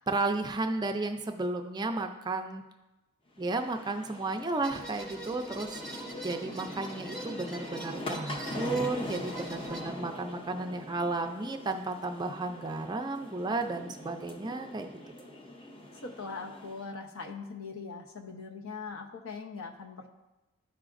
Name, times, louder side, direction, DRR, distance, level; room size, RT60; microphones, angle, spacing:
voice 1, 0.1-2.6 3.4-14.9, right 3 dB, 20° right, 5 dB, 0.4 m, -33 dB
sound 1, 3.4-16.9, left 1 dB, 25° left, 0.7 m, -42 dB
sound 2, 4.6-9.8, right 1 dB, 5° left, 1.2 m, -44 dB
voice 2, 15.9-20.1, left 4 dB, 70° left, 2 dB, 0.9 m, -41 dB
12.5 x 4.9 x 2.5 m, 1.0 s
head